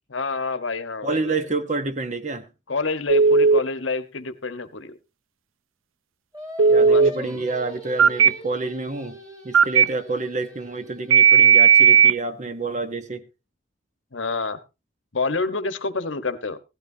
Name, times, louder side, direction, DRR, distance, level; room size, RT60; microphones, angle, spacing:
voice 1, 0.1-1.4 2.7-4.9 6.8-7.4 14.1-14.6 15.1-16.6, left 3 dB, 75° left, 1.1 m, -28 dB
voice 2, 1.0-2.5 6.7-9.2 9.4-13.2, right 3 dB, 35° right, 1.0 m, -28 dB
Telephone, 3.1-3.6 6.6-7.1 8.0-8.3 9.5-9.8 11.1-12.1, right 6 dB, 90° right, 0.6 m, -14 dB
Singing, 6.3-11.7, equal, 20° right, 2.8 m, -40 dB
16.5 x 12.5 x 2.7 m
head